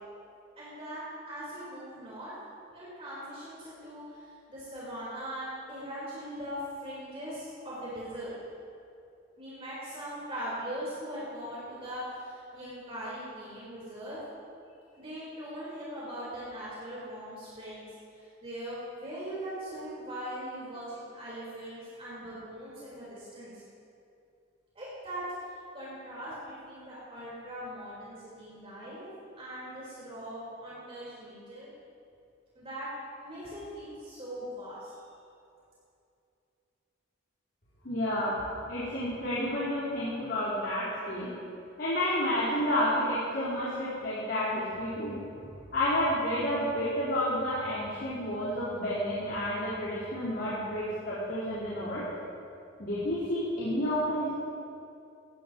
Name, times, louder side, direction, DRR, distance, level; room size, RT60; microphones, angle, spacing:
voice 1, 0.6-2.3 2.7-8.3 9.4-14.2 15.0-23.5 24.7-25.2 25.7-29.1 29.4-31.7 32.5-32.9 33.2-34.9, equal, 30° right, -9 dB, 4.4 m, -40 dB
voice 2, 37.8-38.4 38.7-41.3 41.8-45.2 45.7-52.0 52.8-54.3, left 1 dB, 55° left, -11 dB, 4.2 m, -30 dB
20.0 x 16.0 x 3.1 m, 2.6 s
head